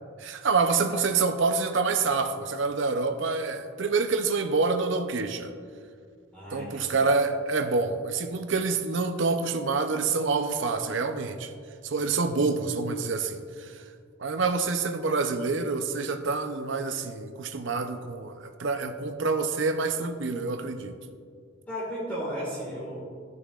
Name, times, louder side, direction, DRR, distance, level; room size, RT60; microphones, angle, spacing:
voice 1, 0.2-5.5 6.5-11.5 11.8-13.8 14.2-21.0, right 4 dB, 60° right, 7 dB, 0.6 m, -27 dB
voice 2, 6.3-6.9 21.7-23.1, equal, 10° left, -8 dB, 1.8 m, -35 dB
14.0 x 6.7 x 2.4 m, 2.2 s
head